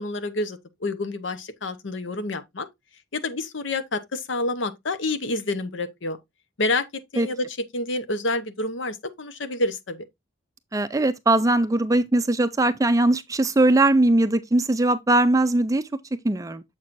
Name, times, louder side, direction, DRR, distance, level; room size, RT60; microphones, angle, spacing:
voice 1, 0.0-2.7 3.1-6.2 6.6-10.1, left 2 dB, 70° left, 0.9 m, -28 dB
voice 2, 10.7-15.9 16.2-16.6, right 2 dB, 15° right, 0.4 m, -20 dB
7.3 x 6.1 x 2.5 m
head